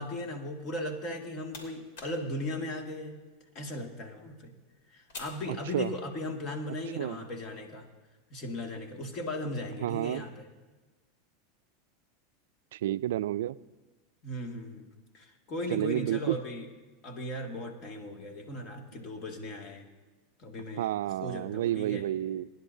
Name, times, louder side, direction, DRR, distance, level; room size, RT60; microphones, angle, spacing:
voice 1, 0.0-3.2 3.5-4.5 4.9-7.9 8.3-10.3 14.2-14.9 15.1-16.7 17.0-19.9 20.4-20.9 21.2-22.0, left 1 dB, 45° left, 3 dB, 2.1 m, -37 dB
sound 1, 1.0-6.3, left 3 dB, 70° left, 2.9 m, -52 dB
voice 2, 5.5-5.9 6.9-7.2 9.8-10.2 12.7-13.6 15.7-16.4 20.8-22.5, right 13 dB, 80° right, 16 dB, 0.3 m, -30 dB
21.5 x 10.5 x 2.7 m, 1.2 s
hypercardioid pair, 110°, 0 cm